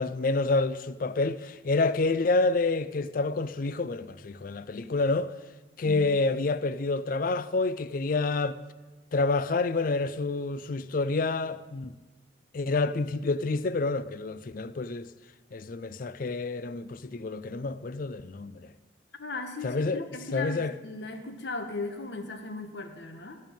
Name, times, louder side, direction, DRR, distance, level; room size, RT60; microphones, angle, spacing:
voice 1, 0.0-5.3 5.8-8.6 9.1-11.9 12.5-15.1 15.5-18.6 19.6-20.0 20.3-20.7, left 3 dB, 45° left, 0.4 m, -28 dB
voice 2, 5.8-6.2 19.2-23.4, left 3 dB, 65° left, 1.4 m, -37 dB
15.0 x 5.4 x 8.9 m
head